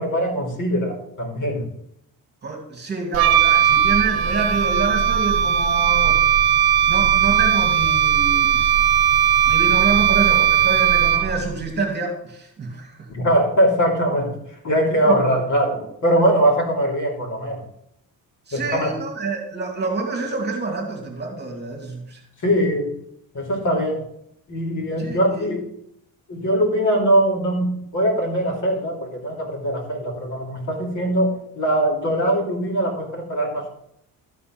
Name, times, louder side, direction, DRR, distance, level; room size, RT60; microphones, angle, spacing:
voice 1, 0.0-1.7 13.1-17.7 18.5-19.0 22.4-23.0 23.3-24.0 24.5-25.6 26.3-33.7, right 1 dB, 55° left, -1 dB, 2.9 m, -21 dB
voice 2, 2.4-6.2 6.9-8.7 9.5-13.1 15.1-15.2 18.5-22.2 25.0-25.5, right 4 dB, 30° right, 1 dB, 2.0 m, -27 dB
Wind instrument woodwind instrument, 3.1-11.5, right 9 dB, 75° right, 0.8 m, -18 dB
12.5 x 4.3 x 5.8 m, 0.75 s
cardioid pair, 140°, 37 cm